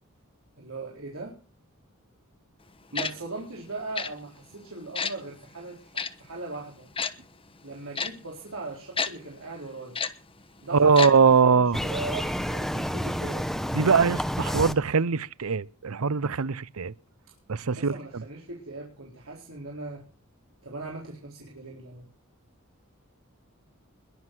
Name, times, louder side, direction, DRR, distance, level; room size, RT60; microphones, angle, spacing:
voice 1, 0.6-1.4 2.9-6.9 7.6-10.0 10.6-13.4 17.7-20.0 20.6-22.1, right 2 dB, 70° right, 4.1 m, -39 dB
Tick-tock, 2.9-3.1 3.9-4.1 4.9-5.1 5.9-6.1 7.0-7.1 7.9-8.1 9.0-9.1 9.9-10.1 10.9-11.1 11.4-11.5, left 5 dB, 25° left, 1.1 m, -28 dB
voice 2, 10.7-11.8 13.7-16.9 17.5-18.2, right 5 dB, 85° right, 0.6 m, -22 dB
sound 1, 11.7-14.7, equal, ahead, 1.1 m, -29 dB
21.5 x 7.7 x 6.2 m
head